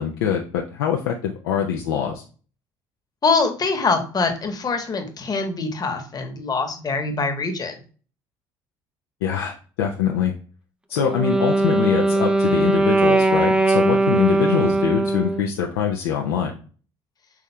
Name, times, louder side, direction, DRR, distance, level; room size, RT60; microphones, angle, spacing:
voice 1, 0.0-2.2 9.2-10.3 10.9-16.6, left 8 dB, 80° left, 1 dB, 0.5 m, -24 dB
voice 2, 3.2-7.8, left 4 dB, 35° left, 5 dB, 1.1 m, -24 dB
Wind instrument woodwind instrument, 11.0-15.5, right 2 dB, 10° right, 0.4 m, -20 dB
5.8 x 3.5 x 2.2 m, 0.39 s
hypercardioid pair, 60°, 12 cm